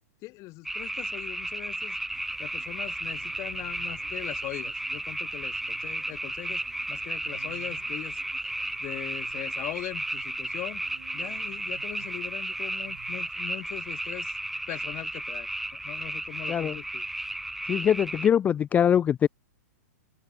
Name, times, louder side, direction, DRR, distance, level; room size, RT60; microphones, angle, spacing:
voice 1, 0.2-2.0 2.4-6.6 6.9-8.2 8.8-10.8 11.1-14.3 14.7-17.0, left 20 dB, 35° left, 3.2 m, -40 dB
sound 1, 0.6-18.3, right 1 dB, ahead, 0.8 m, -34 dB
sound 2, 2.1-13.9, right 9 dB, 75° right, 6.4 m, -54 dB
voice 2, 17.7-19.3, left 9 dB, 20° left, 0.4 m, -23 dB
open air
hypercardioid pair, 125°, 9 cm